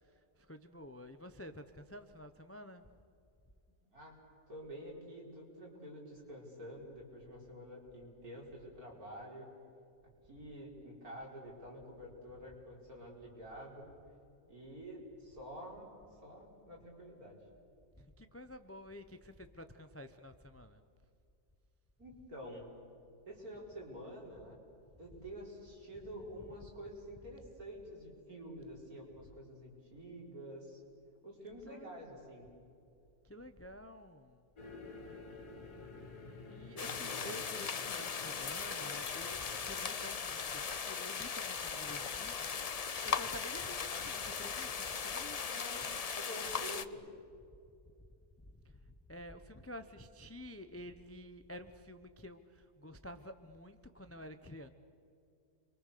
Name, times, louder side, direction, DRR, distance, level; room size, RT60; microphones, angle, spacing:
voice 1, 0.4-2.8 18.0-20.8 31.7-32.0 33.2-34.4 36.5-45.6 48.4-48.5 48.8-54.7, left 1 dB, 15° left, 9 dB, 0.5 m, -50 dB
voice 2, 4.5-9.5 10.3-13.9 14.5-15.9 16.2-17.4 22.0-22.7 23.3-24.6 25.0-30.8 31.2-32.5 36.8-37.3 45.5-47.0, equal, 60° right, -2 dB, 5.4 m, -49 dB
sound 1, 34.6-41.9, left 3 dB, 65° left, 2.9 m, -52 dB
sound 2, 36.8-46.8, left 6 dB, 85° left, 0.3 m, -38 dB
29.0 x 23.5 x 6.7 m, 2.5 s
omnidirectional pair, 1.7 m